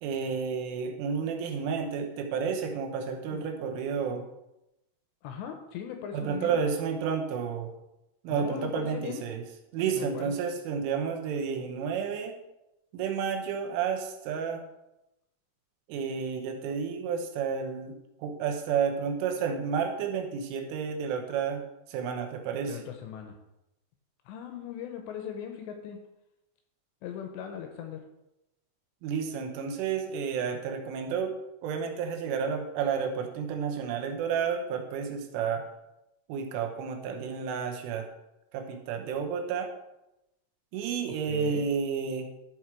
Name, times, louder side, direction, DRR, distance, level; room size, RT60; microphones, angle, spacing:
voice 1, 0.0-4.3 6.1-7.7 8.2-9.5 9.7-12.4 12.9-14.7 15.9-21.6 21.9-22.8 29.0-31.4 31.6-35.6 36.3-38.1 38.5-39.7 40.7-42.3, right 6 dB, 80° right, 4 dB, 3.5 m, -31 dB
voice 2, 5.2-6.6 8.3-9.3 9.9-10.3 22.6-23.4 24.3-26.0 27.0-28.0 41.0-41.7, left 9 dB, 80° left, 5 dB, 2.7 m, -39 dB
12.5 x 4.8 x 4.5 m, 0.90 s
omnidirectional pair, 5.7 m